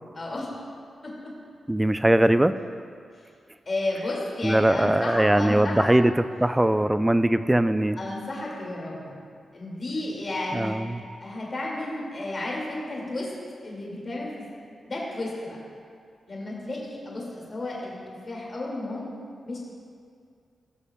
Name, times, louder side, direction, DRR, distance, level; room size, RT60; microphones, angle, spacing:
voice 1, 0.2-0.5 1.0-1.3 3.7-5.9 8.0-9.2 9.5-10.8 11.2-13.3 13.6-14.4 14.9-15.6 16.3-19.1 19.4-19.6, left 2 dB, 50° left, -4 dB, 2.2 m, -32 dB
voice 2, 1.7-2.6 4.4-8.0 10.5-11.0, right 1 dB, 15° right, 12 dB, 0.4 m, -21 dB
16.5 x 6.4 x 2.3 m, 2.2 s
supercardioid pair, 40°, 0 cm